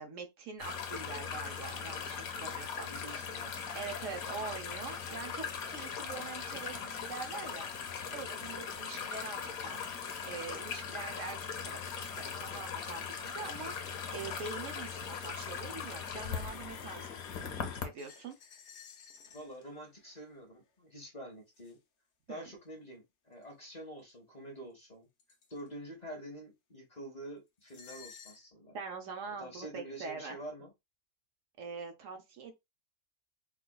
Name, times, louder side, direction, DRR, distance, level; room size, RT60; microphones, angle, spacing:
voice 1, 0.0-2.9 3.7-7.7 8.1-18.4 22.3-22.5 28.7-30.4 31.6-32.5, right 5 dB, 65° right, 1.0 m, -44 dB
sound 1, 0.6-17.9, left 6 dB, 90° left, 1.2 m, -40 dB
voice 2, 2.9-3.6 19.3-21.8 22.3-25.1 25.5-28.8 29.4-30.7, right 1 dB, 35° left, 0.8 m, -47 dB
sound 2, 17.9-20.4 21.5-21.7 23.3-23.4 24.1-24.2 24.8-24.9 25.2-25.7 27.6-28.5, left 6 dB, 60° left, 1.0 m, -56 dB
4.7 x 2.3 x 2.2 m
omnidirectional pair, 1.5 m